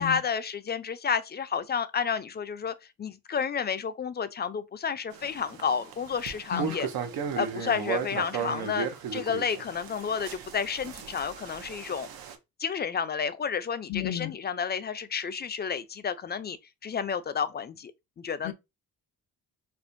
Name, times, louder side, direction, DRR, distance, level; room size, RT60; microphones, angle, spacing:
voice 1, 0.0-6.9 7.4-12.1 12.6-16.6 16.8-17.9 18.2-18.5, left 6 dB, 30° left, 0.4 m, -31 dB
sound 1, 5.1-12.4, right 7 dB, 80° right, 0.7 m, -36 dB
voice 2, 13.9-14.4 18.4-18.5, left 13 dB, 70° left, 0.6 m, -33 dB
4.3 x 2.1 x 2.6 m
cardioid pair, 95°, 36 cm